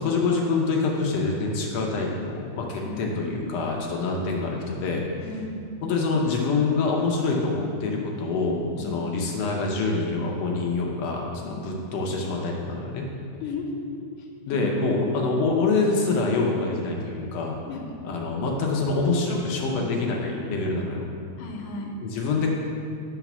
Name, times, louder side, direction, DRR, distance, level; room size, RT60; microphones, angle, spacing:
voice 1, 0.0-5.1 5.8-13.1 14.5-17.6 18.0-21.0 22.0-22.5, left 3 dB, 70° left, -1 dB, 1.5 m, -26 dB
voice 2, 5.2-5.6 8.8-9.0 11.4-11.7 13.4-13.7 14.5-14.8 17.7-17.9 21.4-22.0, left 3 dB, 90° left, 1 dB, 2.5 m, -35 dB
9.5 x 4.1 x 5.9 m, 2.5 s
omnidirectional pair, 3.7 m